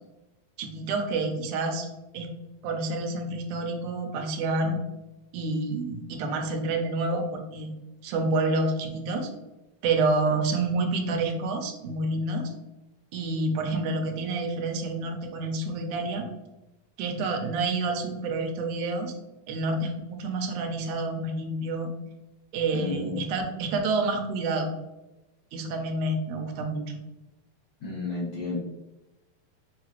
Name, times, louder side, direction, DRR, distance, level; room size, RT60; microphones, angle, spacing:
voice 1, 0.6-1.9 2.1-2.3 2.6-4.8 5.3-7.7 8.0-9.3 9.8-12.5 13.1-16.3 17.0-19.1 19.5-21.9 22.5-24.7 25.5-27.0, right 2 dB, 80° right, 3 dB, 2.0 m, -28 dB
voice 2, 22.7-23.2 27.8-28.6, left 3 dB, 60° left, -8 dB, 1.3 m, -32 dB
4.7 x 2.9 x 2.9 m, 0.98 s
omnidirectional pair, 3.7 m